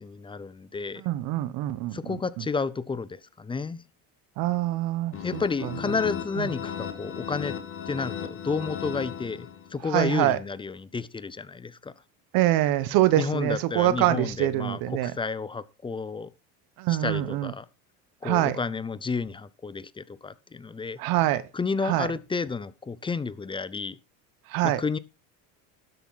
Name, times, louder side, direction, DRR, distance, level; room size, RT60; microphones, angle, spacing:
voice 1, 0.0-1.0 1.9-3.8 5.2-7.5 7.9-11.9 13.2-16.3 16.9-17.7 18.2-21.0 21.5-24.0 24.6-25.0, left 4 dB, 15° left, 0.6 m, -31 dB
voice 2, 1.0-2.5 4.4-5.7 6.4-6.5 9.9-10.4 12.3-15.1 16.8-17.5 18.2-18.6 21.0-21.4 21.8-22.1 24.5-24.8, right 14 dB, 65° right, 1.2 m, -25 dB
sound 1, 5.1-9.9, left 8 dB, 35° left, 2.1 m, -36 dB
12.5 x 8.2 x 4.1 m
cardioid pair, 130°, 38 cm